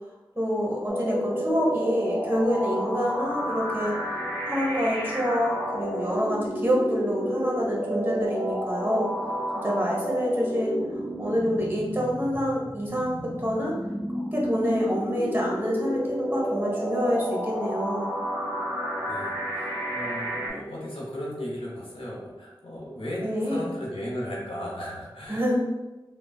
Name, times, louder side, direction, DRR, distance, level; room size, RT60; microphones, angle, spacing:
voice 1, 0.3-3.9 4.4-9.1 9.6-13.7 14.1-18.1 23.2-23.7 25.3-25.5, equal, 25° right, -3 dB, 0.9 m, -27 dB
sound 1, 0.9-20.5, equal, ahead, 1.1 m, -31 dB
voice 2, 19.0-25.5, equal, 90° left, -4 dB, 0.7 m, -36 dB
3.3 x 2.1 x 2.3 m, 1.1 s
wide cardioid pair, 45°, 9 cm